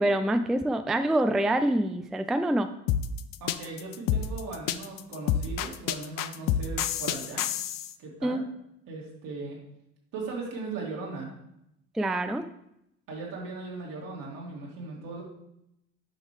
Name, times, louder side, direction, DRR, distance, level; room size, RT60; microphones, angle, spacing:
voice 1, 0.0-2.7 8.2-8.4 11.9-12.4, right 1 dB, ahead, 9 dB, 0.3 m, -25 dB
sound 1, 2.9-7.9, left 10 dB, 65° left, 0.6 m, -28 dB
voice 2, 3.4-7.4 8.0-8.4 8.9-9.6 10.1-11.3 13.1-15.2, right 3 dB, 65° right, -2 dB, 2.5 m, -38 dB
8.0 x 5.4 x 3.2 m, 0.81 s
supercardioid pair, 75°, 36 cm